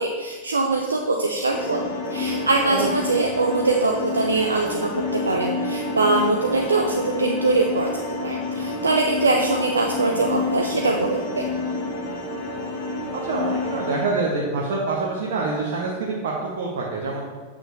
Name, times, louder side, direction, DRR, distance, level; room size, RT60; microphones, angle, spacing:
voice 1, 0.0-1.8 2.1-11.5, right 3 dB, 75° right, 1 dB, 0.4 m, -23 dB
sound 1, 1.5-14.0, left 2 dB, 55° left, 1.8 m, -28 dB
voice 2, 13.1-17.2, right 3 dB, 55° right, -3 dB, 0.9 m, -26 dB
8.0 x 6.1 x 2.6 m, 1.4 s
figure-of-eight pair, 90°, 0 cm